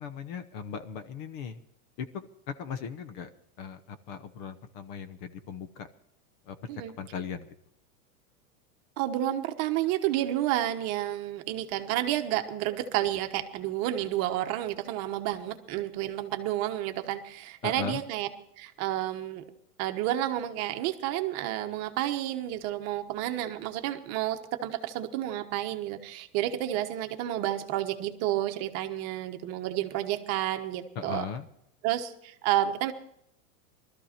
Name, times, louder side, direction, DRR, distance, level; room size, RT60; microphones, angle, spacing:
voice 1, 0.0-1.6 2.0-2.3 2.6-3.3 3.6-5.9 6.5-6.6 7.0-7.5 17.6-18.0 31.0-31.5, left 6 dB, 35° left, 11 dB, 1.0 m, -38 dB
voice 2, 9.0-18.3 18.6-19.4 19.8-31.2 31.8-32.9, right 13 dB, 35° right, 7 dB, 1.3 m, -30 dB
20.0 x 13.5 x 4.4 m, 0.74 s
supercardioid pair, 150°, 45 cm